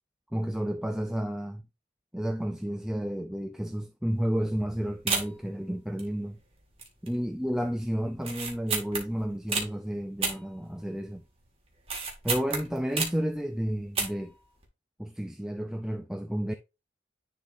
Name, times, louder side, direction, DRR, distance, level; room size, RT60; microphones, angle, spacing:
voice 1, 0.3-1.6 2.1-6.4 7.0-11.2 12.2-14.3 15.0-16.5, equal, 5° right, 0.4 m, -31 dB
sound 1, 4.1-4.3 4.6-4.7 5.1-5.5 6.0-6.5 6.8-7.2 7.5-7.6 8.2-9.7 10.2-11.1 11.4-13.3 13.8-14.4 14.6-14.7, right 4 dB, 30° right, 1.9 m, -31 dB
10.5 x 4.0 x 2.6 m
head